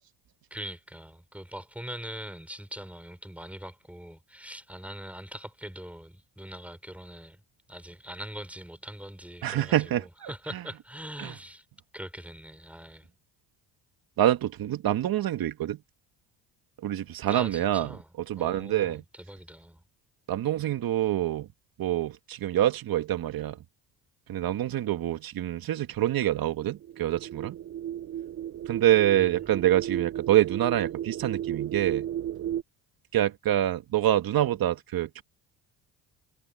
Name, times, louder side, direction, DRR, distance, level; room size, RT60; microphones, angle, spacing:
voice 1, 0.5-7.4 7.7-11.6 11.9-13.1 17.3-18.1 18.4-19.8 29.1-29.3, equal, 5° right, 5.3 m, -42 dB
voice 2, 9.4-10.6 11.2-11.3 14.2-15.8 16.8-18.0 18.3-19.0 20.3-21.5 21.8-23.6 24.3-27.6 28.7-32.1 33.1-35.2, right 12 dB, 55° right, 1.9 m, -26 dB
sound 1, 26.7-32.6, right 11 dB, 40° right, 0.6 m, -34 dB
supercardioid pair, 85°, 41 cm